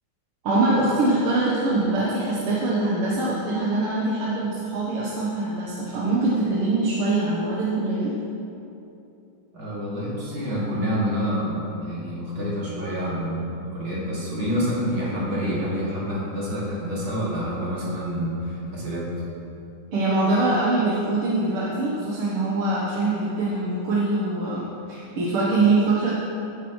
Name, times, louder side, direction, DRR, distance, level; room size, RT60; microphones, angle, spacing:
voice 1, 0.4-8.2 19.9-26.1, right 2 dB, 90° right, -7 dB, 2.2 m, -23 dB
voice 2, 9.5-19.0, equal, 70° right, -8 dB, 3.7 m, -27 dB
15.0 x 9.0 x 3.2 m, 2.8 s
omnidirectional pair, 2.3 m